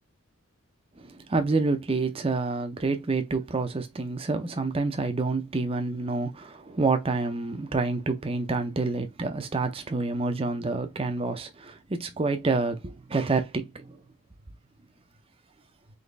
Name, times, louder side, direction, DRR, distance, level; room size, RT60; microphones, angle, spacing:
voice 1, 1.0-14.0, right 3 dB, 25° right, 0.6 m, -28 dB
4.0 x 2.9 x 3.3 m
head